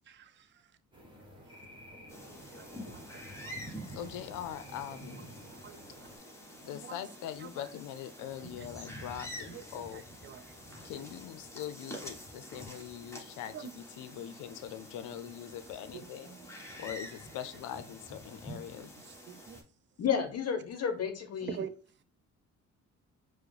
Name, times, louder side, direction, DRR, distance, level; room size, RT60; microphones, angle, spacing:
voice 1, 0.1-0.6 2.5-3.9 5.2-5.3 5.5-6.1 6.7-7.0 7.4-7.7 8.4-8.7 9.5-10.9 13.5-13.7 15.9-16.9 19.0-19.6 21.4-21.7, right 8 dB, 40° right, 0.5 m, -47 dB
sound 1, 0.9-6.2, equal, 15° right, 1.1 m, -50 dB
sound 2, 2.1-19.6, equal, 10° left, 1.0 m, -48 dB
voice 2, 3.9-5.3 6.6-10.0 10.8-16.4 16.8-18.9, left 10 dB, 90° left, 0.5 m, -42 dB
voice 3, 20.0-21.6, left 7 dB, 55° left, 0.7 m, -31 dB
4.7 x 2.1 x 3.1 m
cardioid pair, 90°, 30 cm